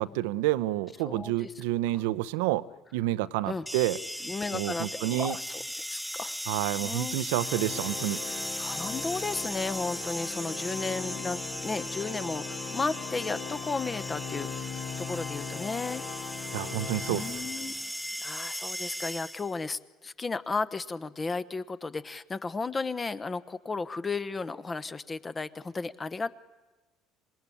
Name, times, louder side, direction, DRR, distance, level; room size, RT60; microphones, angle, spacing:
voice 1, 0.0-2.6 2.9-4.0 4.5-5.4 6.5-8.2 16.5-17.4, right 16 dB, 75° right, 17 dB, 0.8 m, -29 dB
voice 2, 1.0-1.6 1.9-2.0 3.4-3.7 4.2-6.3 6.8-7.2 8.6-16.0 17.1-26.3, left 4 dB, 25° left, 14 dB, 1.1 m, -34 dB
sound 1, 3.7-19.6, equal, ahead, 0.8 m, -37 dB
Organ, 7.3-17.9, left 7 dB, 55° left, 2.1 m, -39 dB
26.0 x 20.0 x 10.0 m, 1.2 s
hypercardioid pair, 65°, 0 cm